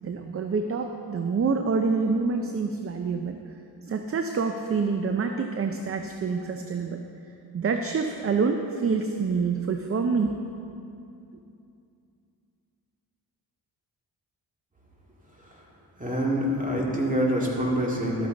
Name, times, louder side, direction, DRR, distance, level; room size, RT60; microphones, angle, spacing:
voice 1, 0.0-3.4 3.8-7.0 7.5-10.3, right 4 dB, 35° right, 5 dB, 0.5 m, -27 dB
voice 2, 16.0-18.3, equal, 20° right, -4 dB, 2.2 m, -26 dB
12.5 x 8.8 x 3.9 m, 2.6 s
cardioid pair, 100°, 42 cm